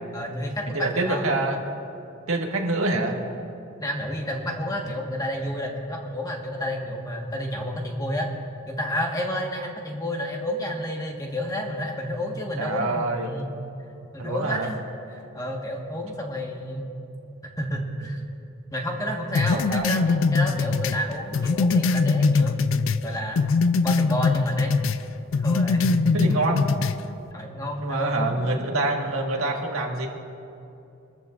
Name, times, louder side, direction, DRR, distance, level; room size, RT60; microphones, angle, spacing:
voice 1, 0.1-1.3 3.8-8.3 8.7-13.5 14.1-14.8 15.1-16.9 17.4-18.3 18.7-23.4 23.8-24.8 25.4-26.1 27.2-29.0, equal, 15° left, 0 dB, 1.5 m, -30 dB
voice 2, 0.7-1.6 2.3-3.2 12.6-13.3 14.2-14.7 19.5-19.8 26.1-26.6 27.8-30.1, right 2 dB, 85° right, 0 dB, 1.7 m, -26 dB
sound 1, 19.3-23.0 23.4-25.0 25.3-27.0, left 4 dB, 65° left, 0.4 m, -22 dB
23.5 x 14.0 x 2.5 m, 2.7 s
head